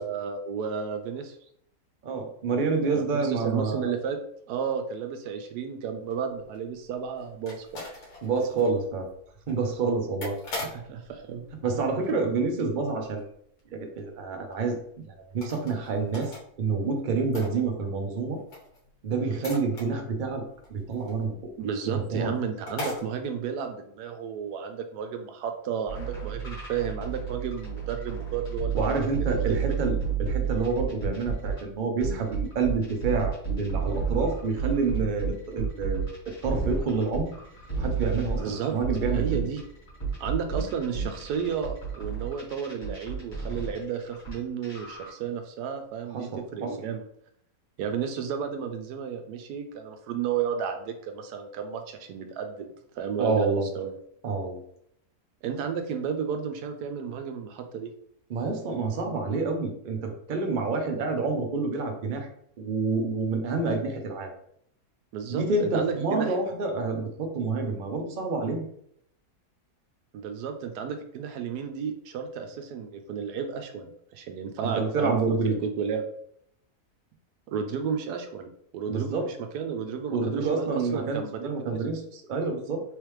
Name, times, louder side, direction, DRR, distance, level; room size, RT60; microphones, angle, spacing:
voice 1, 0.0-1.4 2.9-4.2 4.5-7.8 10.6-11.4 21.6-29.0 29.5-29.6 38.4-38.7 39.1-39.6 40.2-47.0 47.8-52.7 52.9-53.9 55.4-57.9 65.1-66.3 70.1-75.2 75.6-76.1 77.5-78.5 78.7-81.8, right 7 dB, 80° right, 6 dB, 1.1 m, -32 dB
voice 2, 2.0-4.0 8.2-9.1 9.5-10.7 11.6-13.2 13.7-18.4 19.0-20.4 20.7-21.5 21.9-22.3 28.7-36.1 36.4-37.3 37.8-39.4 46.1-46.8 53.2-53.7 54.2-54.6 58.3-62.3 62.6-64.3 65.3-68.7 74.6-75.6 78.9-79.3 80.1-82.8, right 4 dB, 55° right, 4 dB, 0.5 m, -28 dB
sound 1, 6.0-12.6 12.9-13.3 13.6-13.7 14.0-14.1 14.4-14.5 15.3-16.4 16.7-18.1 18.4-21.6 21.9-22.0 22.3-22.4 22.7-23.0, left 2 dB, 75° left, 1.7 m, -41 dB
sound 2, 25.9-31.6 32.0-44.3 44.6-45.1, right 6 dB, 30° left, 1.7 m, -31 dB
3.6 x 3.3 x 3.1 m, 0.70 s
omnidirectional pair, 1.7 m